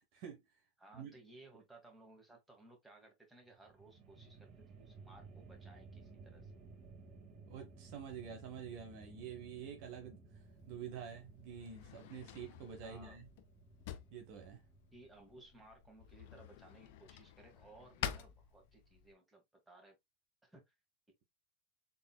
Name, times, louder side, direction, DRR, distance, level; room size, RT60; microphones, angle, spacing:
voice 1, 0.8-6.5 12.8-13.2 14.9-20.0 20.4-20.7, right 2 dB, 10° right, 1.9 m, -60 dB
sound 1, 3.5-15.8, right 4 dB, 40° right, 2.1 m, -58 dB
voice 2, 7.5-10.2 10.7-13.3 14.1-14.6, right 7 dB, 55° right, 1.2 m, -48 dB
Drawer open or close, 10.4-19.1, left 10 dB, 60° left, 0.5 m, -49 dB
4.0 x 3.7 x 2.3 m
hypercardioid pair, 100°, 0 cm